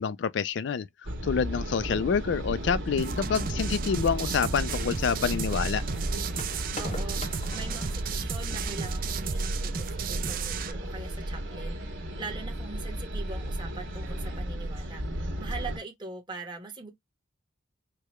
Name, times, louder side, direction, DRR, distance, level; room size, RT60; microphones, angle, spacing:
voice 1, 0.0-5.8, left 6 dB, 65° left, 0.3 m, -28 dB
sound 1, 1.0-15.8, right 1 dB, 80° right, 1.4 m, -35 dB
sound 2, 1.7-8.0, left 3 dB, 35° left, 0.7 m, -47 dB
sound 3, 3.0-10.7, right 5 dB, 45° right, 0.4 m, -33 dB
voice 2, 6.8-15.0 15.4-16.9, right 3 dB, 25° right, 1.1 m, -42 dB
4.7 x 2.2 x 3.0 m
head